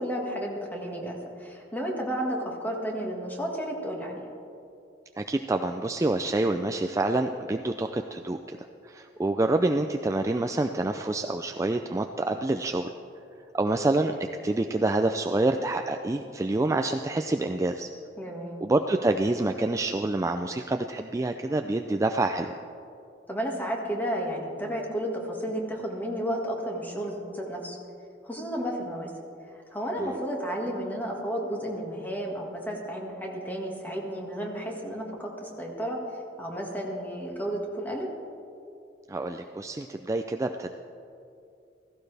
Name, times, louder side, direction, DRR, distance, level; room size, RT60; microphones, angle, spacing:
voice 1, 0.0-4.3 18.2-18.6 23.3-27.8 28.2-29.1 29.7-36.0 36.4-38.1, equal, 10° left, 0 dB, 1.8 m, -32 dB
voice 2, 5.2-8.6 8.8-12.9 13.5-14.1 14.4-17.9 18.6-22.6 30.0-30.1 39.1-40.7, right 2 dB, 20° right, 6 dB, 0.4 m, -27 dB
16.0 x 15.5 x 3.4 m, 2.6 s
head